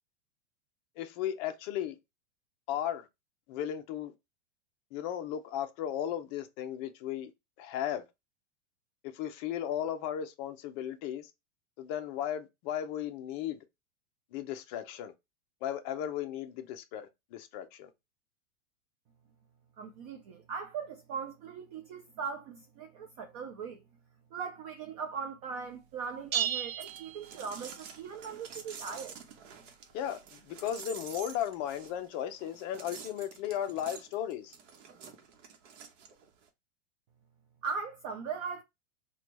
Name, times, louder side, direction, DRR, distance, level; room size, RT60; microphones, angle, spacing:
voice 1, 1.0-2.0 2.7-3.1 3.5-4.1 4.9-7.3 7.6-8.0 9.0-11.3 11.8-13.6 14.3-15.1 15.6-17.9 29.9-34.5, left 10 dB, 35° left, 0.5 m, -35 dB
voice 2, 19.8-23.8 24.3-29.2 37.6-38.6, right 6 dB, 30° right, 0.4 m, -39 dB
sound 1, 26.3-27.9, right 9 dB, 90° right, 0.7 m, -34 dB
sound 2, 26.8-36.5, right 6 dB, 65° right, 1.0 m, -49 dB
4.3 x 2.3 x 3.0 m
supercardioid pair, 145°, 40 cm